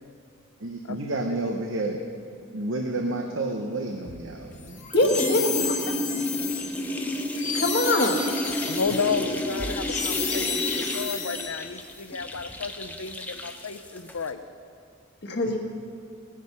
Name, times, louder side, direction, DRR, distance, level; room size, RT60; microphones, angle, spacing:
voice 1, 0.6-2.0 2.5-4.9, right 2 dB, 70° right, 3 dB, 0.9 m, -30 dB
sound 1, 4.1-4.7 4.9-14.3, left 1 dB, 10° left, 0.7 m, -31 dB
sound 2, 4.7-11.9, left 6 dB, 35° left, 1.1 m, -32 dB
voice 2, 4.9-5.9 7.5-8.2 15.2-15.6, left 1 dB, 50° left, 2 dB, 1.5 m, -23 dB
voice 3, 8.7-14.4, left 5 dB, 80° left, 10 dB, 0.7 m, -32 dB
18.0 x 10.0 x 5.4 m, 2.3 s
head